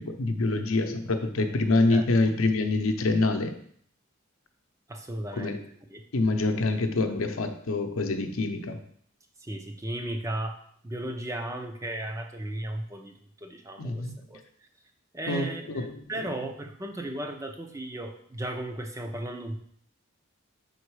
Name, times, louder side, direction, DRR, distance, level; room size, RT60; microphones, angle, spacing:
voice 1, 0.0-3.5 5.3-5.6 6.1-8.8 13.8-14.1 15.3-16.2, left 2 dB, 80° left, 6 dB, 0.7 m, -26 dB
voice 2, 4.9-5.6 5.9-6.0 7.1-7.2 9.4-13.1 13.4-14.4 15.1-19.6, right 1 dB, 15° right, 4 dB, 0.5 m, -35 dB
5.4 x 4.0 x 4.7 m, 0.63 s
head